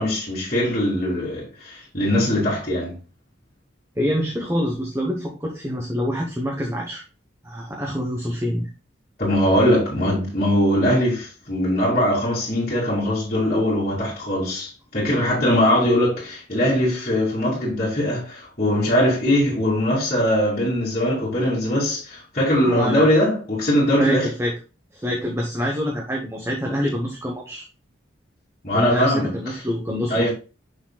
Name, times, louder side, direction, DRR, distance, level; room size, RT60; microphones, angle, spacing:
voice 1, 0.0-3.0 9.2-24.3 28.6-29.6 30.1-30.3, equal, 40° left, 2.5 m, -21 dB
voice 2, 4.0-7.0 7.4-8.7 22.7-23.1 24.0-24.5 24.9-27.6 28.7-30.3, equal, 15° right, 1.0 m, -26 dB
6.7 x 6.3 x 2.3 m
head